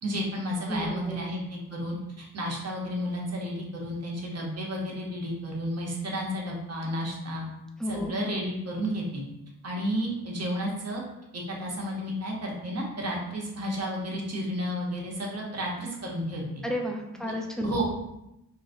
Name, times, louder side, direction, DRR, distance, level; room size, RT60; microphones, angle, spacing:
voice 1, 0.0-7.4 7.9-9.2 9.6-11.0 11.3-16.6 17.6-17.8, equal, 50° right, -2 dB, 0.9 m, -32 dB
voice 2, 0.7-1.3 7.8-8.1 16.6-17.8, equal, ahead, 1 dB, 0.5 m, -32 dB
3.8 x 2.5 x 2.6 m, 0.89 s
wide cardioid pair, 95°, 34 cm